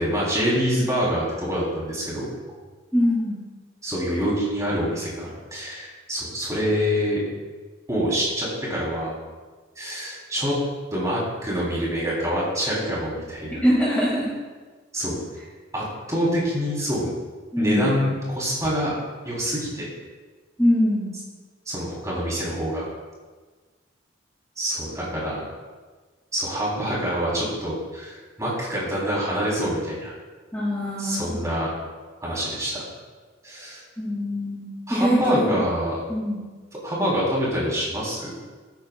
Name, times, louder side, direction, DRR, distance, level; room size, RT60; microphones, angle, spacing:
voice 1, 0.0-2.3 3.8-7.2 7.9-9.2 9.8-10.6 10.9-13.6 14.9-15.2 15.7-17.1 17.6-18.9 19.2-19.9 21.7-22.9 24.6-25.4 26.3-30.1 31.0-31.7 32.2-32.8 33.4-33.8 34.9-36.0 36.8-38.3, equal, 15° right, -6 dB, 3.5 m, -26 dB
voice 2, 2.9-3.4 13.6-14.3 17.5-18.0 20.6-21.1 30.5-31.4 34.0-35.6 36.1-36.4, equal, 10° left, -8 dB, 2.4 m, -23 dB
19.0 x 9.1 x 2.4 m, 1.4 s
head